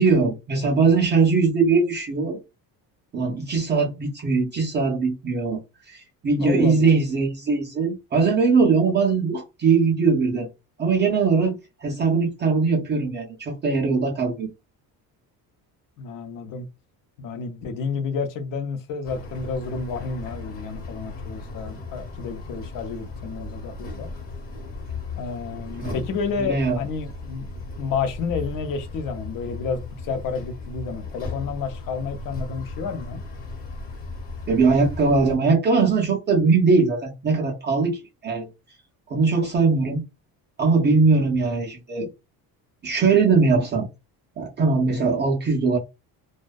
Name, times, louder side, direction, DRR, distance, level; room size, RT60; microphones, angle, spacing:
voice 1, 0.0-2.4 3.1-5.6 5.9-10.5 10.8-14.5 25.8-26.0 26.4-26.8 34.5-38.5 39.1-40.0 40.6-42.1 42.8-43.9 44.4-45.8, right 4 dB, 30° right, 0.4 m, -21 dB
voice 2, 6.4-6.9 16.0-16.7 17.2-24.1 25.1-27.5 27.8-33.2, left 5 dB, 60° left, 0.6 m, -30 dB
sound 1, 19.0-35.4, left 3 dB, 35° left, 1.0 m, -36 dB
2.5 x 2.2 x 2.2 m
cardioid pair, 155°, 39 cm